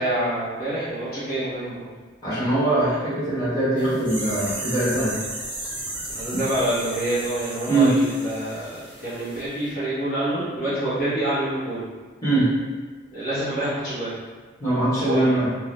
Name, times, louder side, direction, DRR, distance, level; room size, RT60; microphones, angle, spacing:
voice 1, 0.0-1.9 6.0-11.8 13.1-14.2 15.0-15.3, right 1 dB, 45° left, -12 dB, 1.0 m, -27 dB
voice 2, 2.2-5.1 6.3-6.4 7.7-7.9 12.2-12.4 14.6-15.4, right 2 dB, 20° left, -12 dB, 1.1 m, -22 dB
sound 1, 3.8-9.4 9.7-9.8, right 1 dB, 10° right, 0.6 m, -35 dB
2.6 x 2.2 x 3.3 m, 1.4 s
head